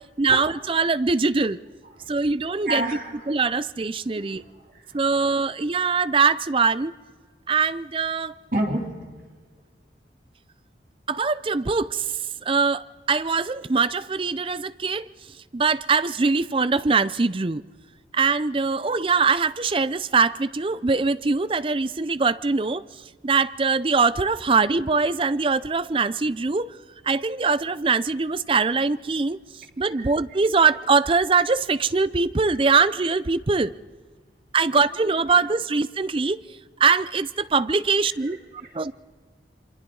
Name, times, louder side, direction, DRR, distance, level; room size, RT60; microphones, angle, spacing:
voice 1, 0.2-1.6 2.1-2.8 3.3-4.4 4.9-6.9 7.5-8.3 11.1-12.1 12.5-15.1 15.5-17.6 18.1-22.8 23.2-26.7 27.0-29.4 29.8-33.7 34.5-36.4 36.8-38.4 38.7-38.9, right 4 dB, 30° right, 0.5 m, -22 dB
voice 2, 2.6-3.3 4.1-5.0 8.5-9.1 29.9-30.1 30.6-30.7 34.6-34.8 38.0-38.1 38.6-38.7, right 1 dB, 50° right, 3.3 m, -30 dB
27.5 x 24.5 x 3.9 m
head